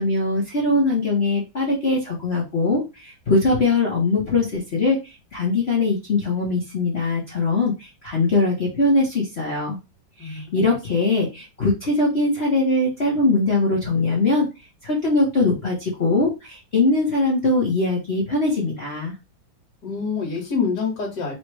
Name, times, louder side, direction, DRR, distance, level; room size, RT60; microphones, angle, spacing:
voice 1, 0.0-9.8 10.2-14.5 14.8-19.1, left 2 dB, 40° left, -3 dB, 1.0 m, -21 dB
voice 2, 10.2-10.7 19.8-21.3, left 5 dB, 60° left, 0 dB, 2.0 m, -26 dB
4.2 x 2.4 x 4.6 m, 0.25 s
omnidirectional pair, 2.1 m